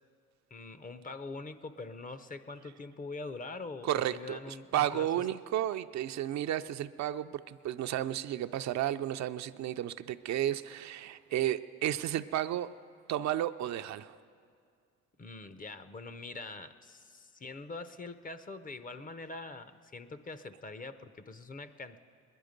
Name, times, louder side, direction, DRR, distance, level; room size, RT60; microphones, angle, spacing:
voice 1, 0.5-5.2 15.2-22.0, left 3 dB, 30° left, 12 dB, 0.6 m, -44 dB
voice 2, 3.8-12.7 13.1-14.2, right 12 dB, 65° right, 10 dB, 0.5 m, -33 dB
20.0 x 11.0 x 5.1 m, 2.2 s
cardioid pair, 90°, 30 cm